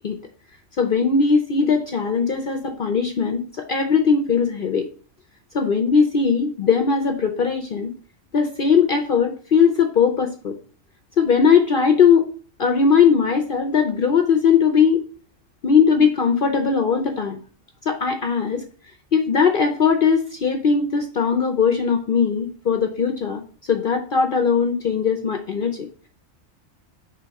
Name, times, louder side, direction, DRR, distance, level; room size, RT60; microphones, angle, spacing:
voice 1, 0.8-4.9 5.5-7.9 8.3-10.6 11.2-12.3 12.6-15.0 15.6-17.4 17.9-18.6 19.1-25.9, left 6 dB, 50° left, 4 dB, 0.7 m, -19 dB
5.1 x 3.4 x 5.6 m, 0.42 s
omnidirectional pair, 1.3 m